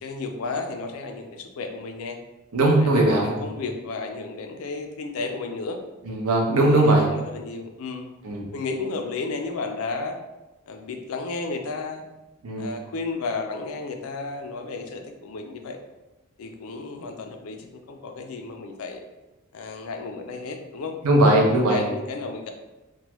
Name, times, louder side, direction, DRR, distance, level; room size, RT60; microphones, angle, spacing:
voice 1, 0.0-2.2 2.8-5.8 6.6-8.1 8.5-10.1 10.7-12.0 12.6-15.8 16.4-19.0 19.5-21.0 21.7-22.5, left 3 dB, 70° left, 5 dB, 0.4 m, -33 dB
voice 2, 2.5-3.5 6.0-7.1 8.2-8.5 12.4-12.7 21.0-21.8, right 1 dB, 85° right, -1 dB, 0.7 m, -19 dB
3.0 x 2.2 x 2.9 m, 1.0 s
head